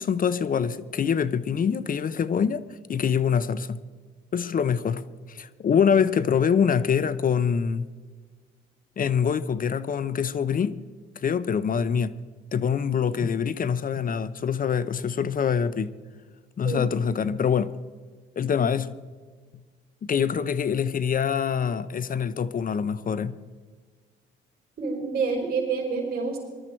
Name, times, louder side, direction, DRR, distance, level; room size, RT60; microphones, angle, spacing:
voice 1, 0.0-2.6 2.9-3.8 4.3-5.0 5.3-7.9 9.0-10.8 11.2-12.1 12.5-15.9 16.6-17.7 18.4-18.9 20.1-23.3, left 7 dB, 45° left, 0.7 m, -24 dB
voice 2, 24.8-26.4, right 4 dB, 50° right, 6.0 m, -27 dB
21.0 x 12.5 x 4.5 m
cardioid pair, 90°, 20 cm